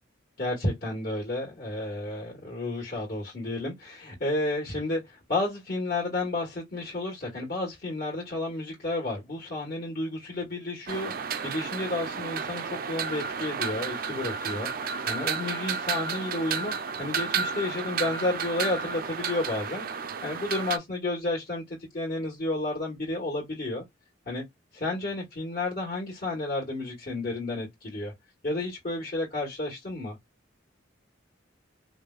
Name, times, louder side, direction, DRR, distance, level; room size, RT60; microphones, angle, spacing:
voice 1, 0.4-11.1 11.4-16.7 17.0-19.8 20.2-23.8 24.2-24.4 24.7-28.1 28.4-30.2, left 2 dB, 45° left, 1.3 m, -31 dB
sound 1, 10.9-20.8, right 6 dB, 45° right, 0.4 m, -32 dB
4.7 x 2.1 x 2.3 m
head